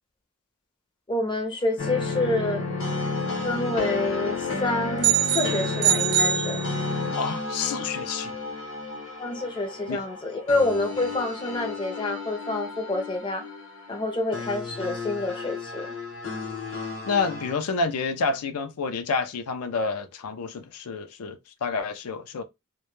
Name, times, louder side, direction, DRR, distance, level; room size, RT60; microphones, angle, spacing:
voice 1, 1.1-2.7 3.4-6.6 9.2-13.5 13.9-16.0, left 2 dB, 20° left, 0.4 m, -28 dB
sound 1, 1.8-17.5, left 3 dB, 60° left, 0.8 m, -32 dB
sound 2, 5.0-7.2, right 10 dB, 85° right, 0.4 m, -24 dB
voice 2, 7.1-8.4 9.9-10.0 17.0-22.4, left 4 dB, 80° left, 0.4 m, -29 dB
2.2 x 2.1 x 3.0 m
head